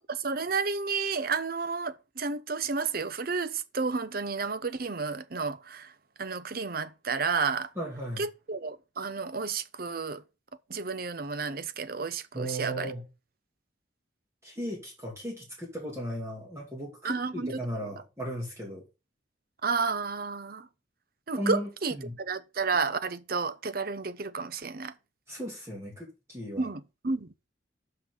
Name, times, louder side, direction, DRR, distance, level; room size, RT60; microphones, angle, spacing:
voice 1, 0.1-5.9 6.2-7.7 8.2-10.2 10.7-12.9 17.0-17.6 19.6-20.7 21.3-24.9 26.6-27.3, right 4 dB, 50° right, 0.7 m, -31 dB
voice 2, 7.8-8.2 12.3-13.0 14.4-18.8 21.4-22.1 25.3-26.7, equal, 15° right, 2.5 m, -36 dB
5.9 x 5.9 x 6.6 m
head